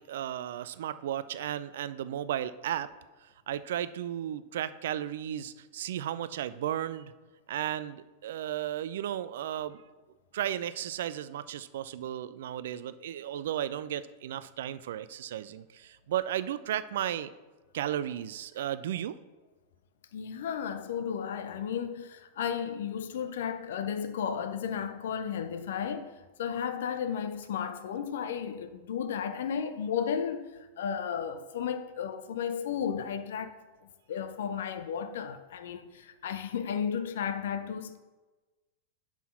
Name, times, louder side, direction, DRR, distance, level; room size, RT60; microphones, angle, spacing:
voice 1, 0.0-2.9 3.5-7.1 7.5-9.8 10.3-17.3 17.7-19.2, right 11 dB, 60° right, 0.3 m, -34 dB
voice 2, 20.1-30.5 30.8-33.6 33.8-38.0, left 7 dB, 60° left, 0.5 m, -34 dB
6.0 x 5.5 x 5.5 m
figure-of-eight pair, 90°, 0 cm